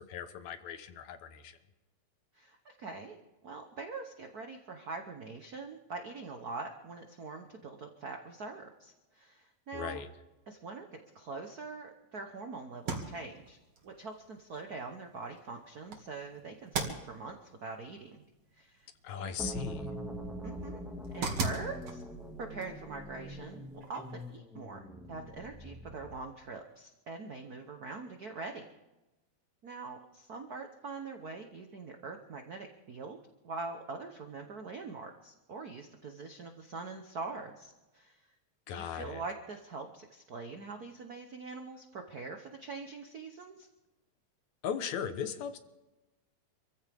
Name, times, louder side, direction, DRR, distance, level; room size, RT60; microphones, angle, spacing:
voice 1, 0.1-1.6 9.7-10.1 19.0-19.9 38.7-39.2 44.6-45.6, left 8 dB, 75° left, 9 dB, 2.4 m, -38 dB
voice 2, 2.3-3.2 3.4-10.0 10.5-10.9 11.1-13.6 13.8-18.2 18.5-18.9 19.2-19.3 20.4-20.8 21.1-22.0 22.4-24.8 25.1-28.6 29.6-33.2 33.4-38.3 38.7-43.7, right 3 dB, 80° right, 4 dB, 0.8 m, -43 dB
sound 1, 12.7-24.4, right 4 dB, 55° right, 3.2 m, -42 dB
sound 2, 19.4-26.3, equal, ahead, 1.2 m, -43 dB
26.5 x 15.0 x 3.5 m, 1.0 s
omnidirectional pair, 3.4 m